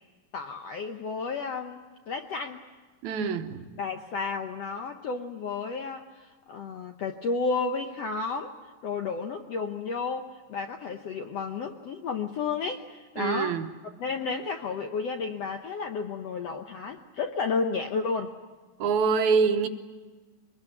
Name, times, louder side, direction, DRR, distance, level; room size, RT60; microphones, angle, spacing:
voice 1, 0.3-2.6 3.8-8.6 8.8-13.6 14.0-18.4, left 4 dB, 70° left, 1.5 m, -32 dB
voice 2, 3.0-3.7 13.2-13.7 18.8-19.7, right 5 dB, 65° right, 2.3 m, -25 dB
23.5 x 20.5 x 9.9 m
omnidirectional pair, 4.1 m